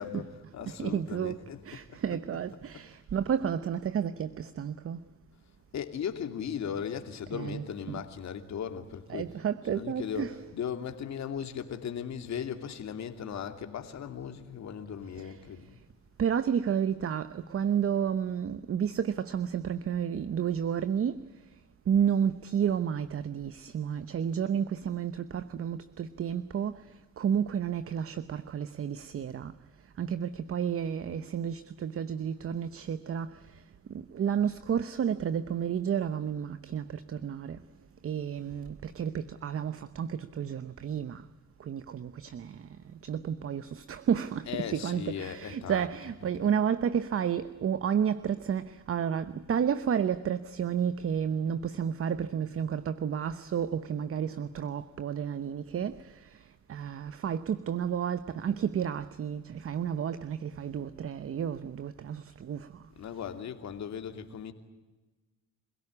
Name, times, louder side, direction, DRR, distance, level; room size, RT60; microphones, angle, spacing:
voice 1, 0.0-2.4 2.7-2.8 5.7-9.3 9.6-15.8 44.4-46.5 63.0-64.5, left 8 dB, 65° left, 2.8 m, -38 dB
voice 2, 0.8-5.0 7.3-8.0 9.1-10.3 15.2-15.8 16.2-21.6 21.9-37.6 38.0-41.3 41.6-62.9, right 8 dB, 50° right, 0.9 m, -31 dB
27.0 x 17.0 x 9.8 m
cardioid pair, 90°, 30 cm